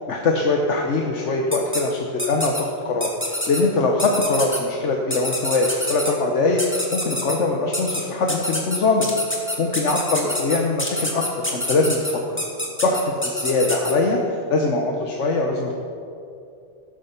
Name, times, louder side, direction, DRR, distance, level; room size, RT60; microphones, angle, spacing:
voice 1, 0.1-9.1 9.6-12.4 12.8-15.7, left 3 dB, 80° left, 1 dB, 1.3 m, -22 dB
sound 1, 1.5-1.8 2.2-2.6 3.0-3.6 4.0-4.6 5.1-6.1 6.6-7.4 7.7-8.0 8.3-13.9, left 1 dB, 10° left, 1.7 m, -26 dB
17.5 x 7.5 x 5.7 m, 2.6 s
omnidirectional pair, 1.2 m